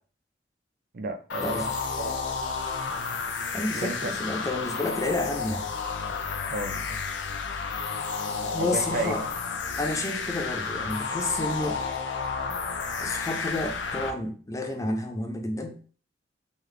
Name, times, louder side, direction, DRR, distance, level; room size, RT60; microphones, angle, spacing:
voice 1, 0.9-2.1 3.8-4.1 6.5-7.0 8.6-9.1, right 2 dB, 55° right, 0.5 m, -33 dB
sound 1, 1.3-14.1, left 5 dB, 90° left, 0.5 m, -31 dB
voice 2, 3.5-5.7 8.4-9.2 9.8-11.8 13.0-15.8, left 2 dB, 20° left, 0.5 m, -30 dB
3.7 x 3.1 x 3.2 m
head